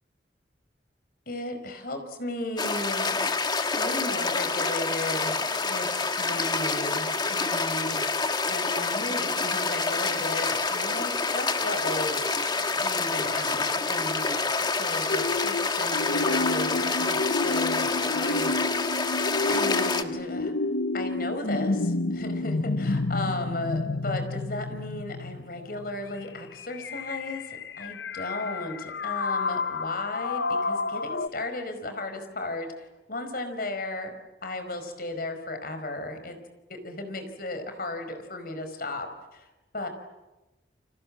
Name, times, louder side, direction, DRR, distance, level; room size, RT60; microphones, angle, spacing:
voice 1, 1.3-3.2 3.5-5.9 6.2-12.2 12.6-18.5 19.5-20.5 20.9-34.1 34.4-36.4 36.7-39.4 39.7-39.9, left 2 dB, 55° left, 7 dB, 5.0 m, -35 dB
sound 1, 2.6-20.0, left 4 dB, 25° left, 1.5 m, -27 dB
sound 2, 15.1-31.3, left 3 dB, 85° left, 1.0 m, -30 dB
30.0 x 25.5 x 7.6 m, 1.0 s
head